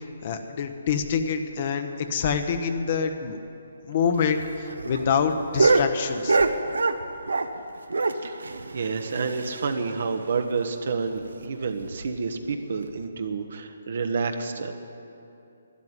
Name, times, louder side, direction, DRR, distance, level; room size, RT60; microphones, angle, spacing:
voice 1, 0.2-3.4 3.9-6.4, left 6 dB, 45° left, 7 dB, 1.0 m, -26 dB
sound 1, 4.2-7.6 7.9-9.9 10.2-10.3 10.6-10.7 11.1-11.2 11.7-12.0 12.9-13.0, right 3 dB, 85° right, 1.0 m, -25 dB
voice 2, 8.7-14.7, right 4 dB, 65° right, 6 dB, 1.1 m, -29 dB
12.5 x 10.5 x 9.5 m, 2.7 s
hypercardioid pair, 155°, 0 cm